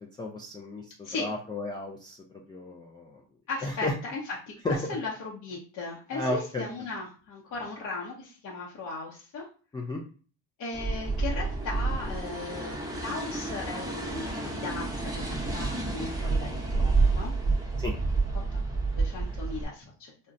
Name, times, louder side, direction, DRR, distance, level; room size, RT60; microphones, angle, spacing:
voice 1, 0.2-2.2 2.5-3.2 3.6-3.9 4.6-4.8 6.1-6.6 9.7-10.0 17.8-17.9, left 2 dB, 10° left, -2 dB, 0.4 m, -33 dB
voice 2, 3.5-9.5 10.6-17.4 17.9-18.0 18.5-20.1, left 3 dB, 50° left, -3 dB, 0.8 m, -37 dB
sound 1, 10.7-19.6, right 3 dB, 10° right, 0.7 m, -29 dB
4.0 x 2.1 x 2.5 m, 0.39 s
cardioid pair, 105°, 38 cm